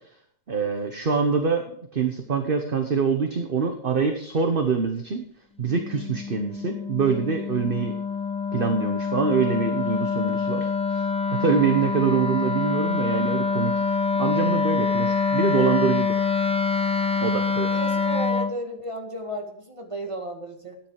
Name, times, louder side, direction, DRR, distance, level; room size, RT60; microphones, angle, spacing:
voice 1, 0.5-1.6 1.9-5.2 5.6-8.0 8.5-13.7 14.1-16.2 17.2-17.7, right 5 dB, 45° right, 5 dB, 1.3 m, -25 dB
Wind instrument woodwind instrument, 5.6-18.6, left 5 dB, 5° left, 0.5 m, -25 dB
voice 2, 17.7-20.8, right 1 dB, 25° right, 2 dB, 2.1 m, -34 dB
13.5 x 10.5 x 4.9 m, 0.66 s
omnidirectional pair, 1.4 m